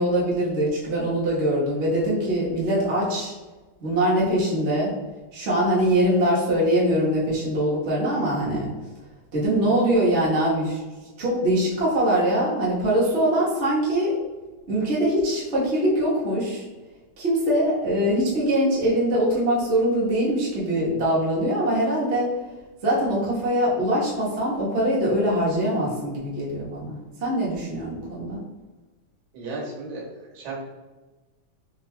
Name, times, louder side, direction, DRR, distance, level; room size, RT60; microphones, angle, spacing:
voice 1, 0.0-3.3 3.8-4.9 5.3-8.7 9.3-10.8 11.2-14.1 14.7-16.6 17.2-22.3 22.8-28.4, right 1 dB, 60° right, -7 dB, 0.7 m, -23 dB
voice 2, 29.3-30.1 30.3-30.5, right 3 dB, 85° right, -3 dB, 2.5 m, -34 dB
5.3 x 3.1 x 2.2 m, 1.2 s
omnidirectional pair, 3.3 m